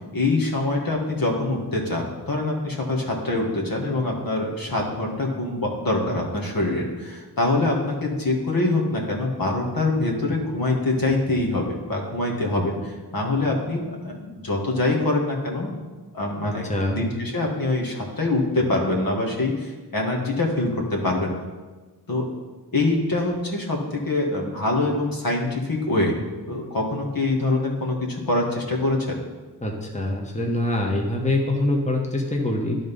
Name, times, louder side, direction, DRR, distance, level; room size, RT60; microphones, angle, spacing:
voice 1, 0.1-15.8 16.1-21.3 22.1-22.3 22.7-26.2 26.5-29.2, left 2 dB, 55° left, -1 dB, 1.8 m, -24 dB
voice 2, 16.4-17.0 29.6-32.8, left 1 dB, 15° left, 0 dB, 1.4 m, -24 dB
10.5 x 4.0 x 5.4 m, 1.3 s
cardioid pair, 45°, 41 cm